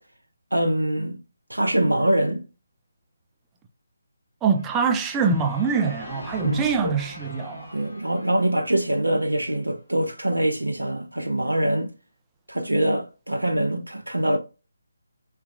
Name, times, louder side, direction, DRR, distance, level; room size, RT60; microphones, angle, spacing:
voice 1, 0.5-1.2 1.5-2.4 6.4-6.9 7.7-11.9 12.5-14.4, right 1 dB, 85° right, 0.5 m, -24 dB
voice 2, 4.4-7.8, right 5 dB, 15° right, 0.4 m, -24 dB
sound 1, 4.5-9.6, left 1 dB, 70° left, 1.7 m, -42 dB
3.4 x 2.9 x 2.3 m
figure-of-eight pair, 150°, 0 cm